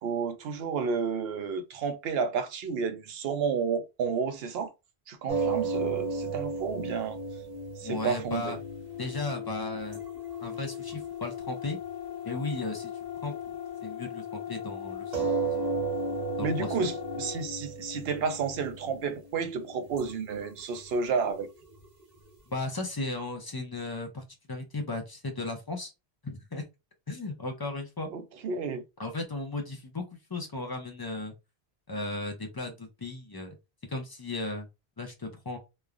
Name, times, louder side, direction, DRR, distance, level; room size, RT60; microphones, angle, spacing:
voice 1, 0.0-4.7 5.1-7.2 7.8-8.6 16.4-21.5 28.1-28.8, right 5 dB, 70° right, 0.8 m, -31 dB
sound 1, 5.3-11.5 12.6-12.7 15.1-22.3, right 4 dB, 45° right, 0.9 m, -34 dB
voice 2, 7.8-8.6 9.0-10.0 10.4-11.8 12.2-12.9 13.2-13.3 13.8-15.4 15.7-15.8 16.4-16.9 22.5-25.9 26.2-26.6 27.1-28.1 29.0-30.0 30.3-31.3 31.9-33.6 33.9-34.7 35.0-35.6, left 2 dB, 30° left, 0.4 m, -35 dB
sound 2, 8.4-17.5, left 9 dB, 75° left, 0.9 m, -39 dB
3.1 x 2.0 x 2.4 m
omnidirectional pair, 1.1 m